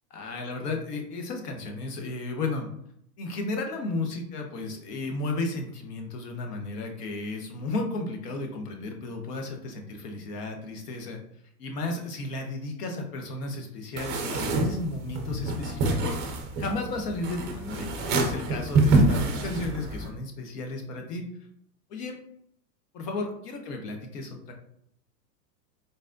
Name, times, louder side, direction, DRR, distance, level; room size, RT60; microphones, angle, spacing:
voice 1, 0.1-2.7 3.2-11.2 11.6-16.2 16.6-21.2 21.9-22.2 22.9-24.5, left 2 dB, 70° left, 3 dB, 1.2 m, -34 dB
sound 1, 14.0-20.1, right 2 dB, 20° right, 0.5 m, -26 dB
4.1 x 3.3 x 2.6 m, 0.71 s
hypercardioid pair, 130°, 50 cm